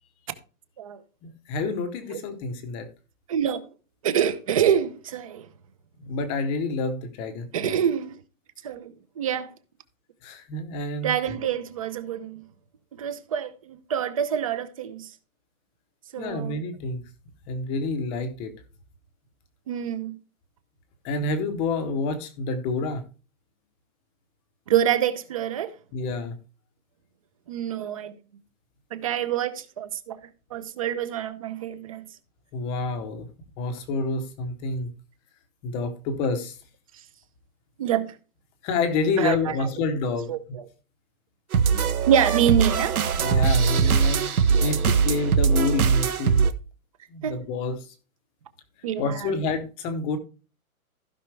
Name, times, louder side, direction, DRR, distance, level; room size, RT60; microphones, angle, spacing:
voice 1, 1.2-2.9 6.0-7.8 10.2-11.2 16.2-17.0 17.5-18.5 21.0-23.0 25.9-26.3 32.5-33.3 33.6-34.9 35.6-36.5 38.6-40.3 43.2-46.4 47.1-47.8 49.0-50.2, left 3 dB, 15° left, 0.8 m, -28 dB
voice 2, 3.3-3.6 4.0-5.5 7.5-8.1 8.6-9.5 11.0-12.4 13.0-15.1 16.1-16.6 19.7-20.2 24.7-25.7 27.5-28.2 28.9-30.2 30.5-32.0 37.8-38.1 39.2-39.7 40.3-40.6 42.1-43.0 43.9-44.0 47.2-47.4 48.8-49.3, right 9 dB, 25° right, 0.7 m, -26 dB
sound 1, 41.5-46.5, right 6 dB, 75° right, 1.4 m, -21 dB
15.5 x 5.7 x 3.3 m
hypercardioid pair, 160°, 44 cm